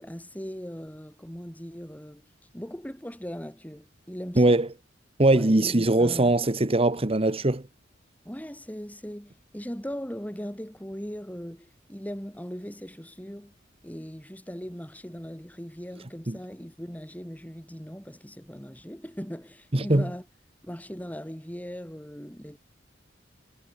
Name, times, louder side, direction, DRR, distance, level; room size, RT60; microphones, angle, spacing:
voice 1, 0.0-2.2 2.5-4.6 5.3-6.3 8.2-13.5 13.8-20.2 20.6-22.6, equal, 10° left, 4.1 m, -39 dB
voice 2, 4.4-4.7 5.2-7.7 16.3-16.4 19.7-20.1, right 2 dB, 30° right, 1.3 m, -21 dB
head